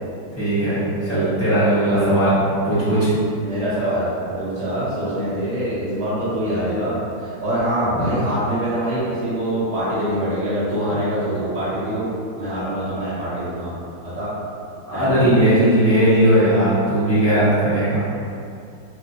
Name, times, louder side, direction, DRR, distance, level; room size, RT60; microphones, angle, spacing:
voice 1, 0.4-0.8 1.1-2.3 2.6-3.1 8.0-8.1 14.9-18.0, right 1 dB, 10° left, -14 dB, 0.7 m, -17 dB
voice 2, 1.8-2.2 3.4-13.8 14.0-14.3 14.9-15.7, right 1 dB, 45° right, -11 dB, 1.1 m, -24 dB
3.3 x 2.5 x 2.7 m, 2.5 s
omnidirectional pair, 2.2 m